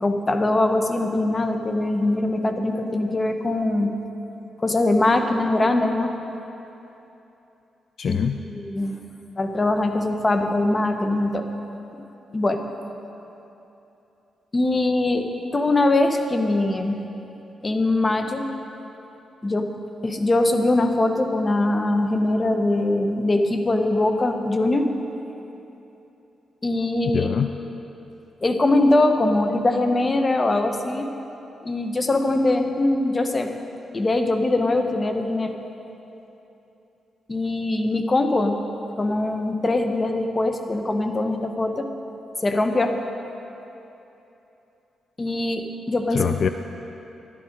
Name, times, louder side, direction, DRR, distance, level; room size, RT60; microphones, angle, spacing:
voice 1, 0.0-3.9 4.6-6.1 8.1-9.0 9.4-11.5 12.3-12.6 14.5-17.0 17.6-18.5 19.4-19.7 20.0-24.9 26.6-27.3 28.4-31.1 31.6-33.5 33.9-35.5 37.3-38.6 39.0-41.9 42.4-42.9 45.2-46.2, left 2 dB, 30° left, 6 dB, 1.0 m, -22 dB
voice 2, 8.0-8.5 27.0-27.5 46.1-46.5, left 7 dB, 60° left, 8 dB, 0.3 m, -24 dB
11.0 x 11.0 x 5.2 m, 3.0 s
cardioid pair, 70°, 0 cm